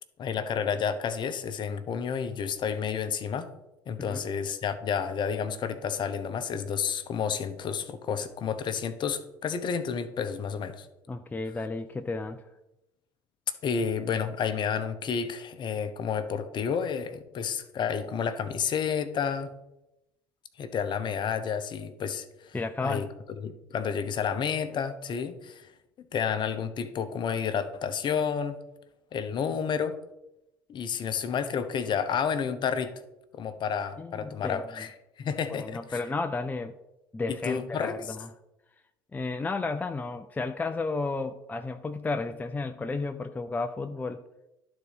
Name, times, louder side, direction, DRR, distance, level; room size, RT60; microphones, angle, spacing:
voice 1, 0.2-3.5 3.9-10.9 13.6-19.5 20.6-22.6 22.8-23.1 23.4-25.7 26.1-28.6 29.1-30.0 30.7-32.9 33.3-36.0 37.3-37.9, left 7 dB, 45° left, 10 dB, 0.9 m, -30 dB
voice 2, 11.1-12.4 22.5-23.1 34.0-34.6 35.5-36.7 37.1-38.3 39.1-44.2, left 3 dB, 15° left, 8 dB, 0.5 m, -32 dB
11.5 x 4.1 x 5.0 m, 0.92 s
hypercardioid pair, 70°, 11 cm